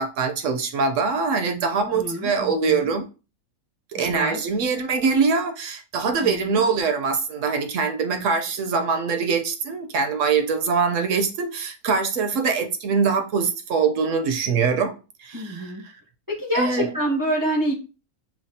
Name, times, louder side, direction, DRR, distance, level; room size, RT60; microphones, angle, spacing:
voice 1, 0.0-3.0 3.9-15.7 16.5-16.9, right 5 dB, 70° right, 0.8 m, -23 dB
voice 2, 1.9-2.8 3.9-4.4 6.2-6.6 15.3-15.8 16.3-17.7, equal, 25° right, 0.5 m, -27 dB
5.7 x 2.1 x 2.6 m
omnidirectional pair, 1.5 m